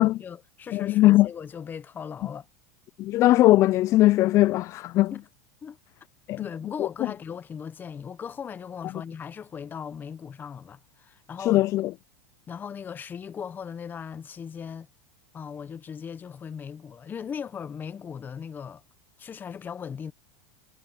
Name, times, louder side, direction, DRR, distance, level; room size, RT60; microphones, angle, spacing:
voice 1, 0.0-2.5 5.1-5.2 5.6-5.8 6.3-11.6 12.5-14.9 15.3-18.8 19.2-20.1, left 7 dB, 25° left, 1.1 m, -38 dB
voice 2, 0.7-1.3 3.0-5.1 6.3-6.4 6.8-6.9 11.4-11.9, left 16 dB, 40° left, 0.4 m, -20 dB
supercardioid pair, 115°, 8 cm